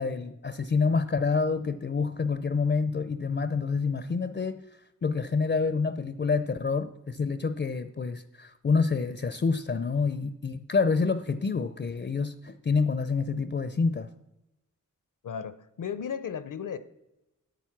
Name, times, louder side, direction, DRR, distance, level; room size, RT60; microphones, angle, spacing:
voice 1, 0.0-4.6 5.0-14.1, left 4 dB, 35° left, 11 dB, 0.5 m, -27 dB
voice 2, 15.2-16.8, left 7 dB, 70° left, 14 dB, 0.7 m, -35 dB
9.3 x 9.1 x 5.8 m, 0.94 s
wide cardioid pair, 130°, 32 cm